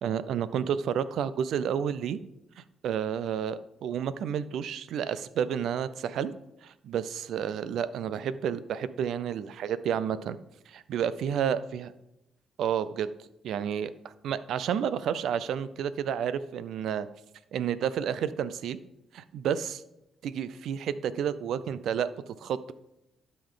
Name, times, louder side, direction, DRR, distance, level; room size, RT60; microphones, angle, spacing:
voice 1, 0.0-2.2 2.8-6.3 6.6-10.4 10.7-11.9 12.6-13.1 13.4-13.9 14.2-17.1 17.5-18.8 19.1-19.8 20.2-22.7, right 8 dB, 75° right, 15 dB, 0.5 m, -30 dB
12.0 x 5.4 x 3.8 m, 0.88 s
cardioid pair, 90°, 0 cm